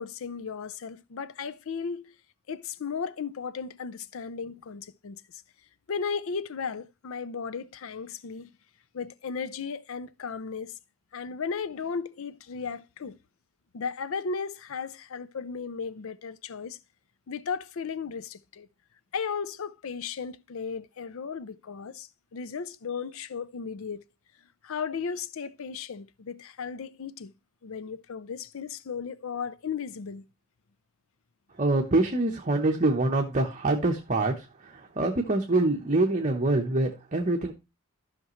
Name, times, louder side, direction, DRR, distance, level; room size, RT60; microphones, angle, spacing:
voice 1, 0.0-2.1 2.5-5.4 5.9-8.5 8.9-10.7 11.1-13.2 13.7-16.8 17.3-18.7 19.1-24.0 24.6-27.3 27.6-30.3, left 5 dB, 65° left, 0.5 m, -35 dB
voice 2, 31.6-37.5, right 2 dB, 35° right, 1.0 m, -25 dB
13.5 x 5.9 x 3.1 m
head